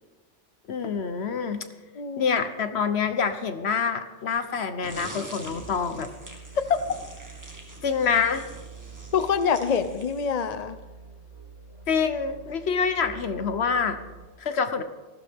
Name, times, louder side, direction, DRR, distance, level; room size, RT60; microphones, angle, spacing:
voice 1, 0.7-1.7 2.2-6.1 7.8-8.4 11.9-14.0 14.4-14.8, left 6 dB, 65° left, 10 dB, 1.2 m, -26 dB
voice 2, 2.0-2.4 6.6-6.7 9.1-10.8, left 6 dB, 45° left, 11 dB, 0.6 m, -26 dB
sound 1, 4.8-10.7, right 1 dB, 15° right, 1.7 m, -45 dB
sound 2, 5.5-14.3, right 4 dB, 35° right, 3.1 m, -46 dB
18.5 x 14.5 x 3.6 m, 1.2 s
omnidirectional pair, 1.2 m